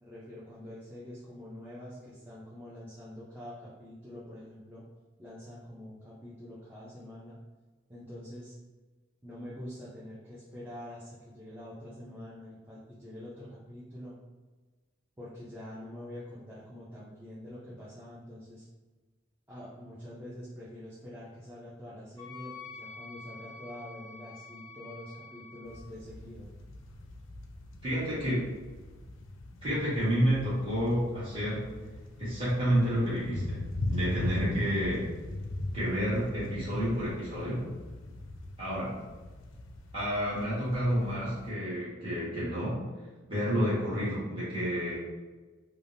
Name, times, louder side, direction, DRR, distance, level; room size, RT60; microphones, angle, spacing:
voice 1, 0.0-4.8 5.2-7.4 7.9-8.6 9.2-14.1 15.2-18.7 19.5-26.5, left 1 dB, 10° right, -10 dB, 0.4 m, -45 dB
Wind instrument woodwind instrument, 22.2-25.8, left 4 dB, 80° right, 1.1 m, -47 dB
sound 1, 25.7-41.5, left 2 dB, 85° left, 0.4 m, -40 dB
voice 2, 27.8-28.4 29.6-31.7 32.2-33.6 33.9-35.1 35.7-37.7 38.6-38.9 39.9-42.8 43.3-45.0, equal, 25° right, -10 dB, 1.3 m, -29 dB
3.3 x 2.1 x 2.6 m, 1.3 s
head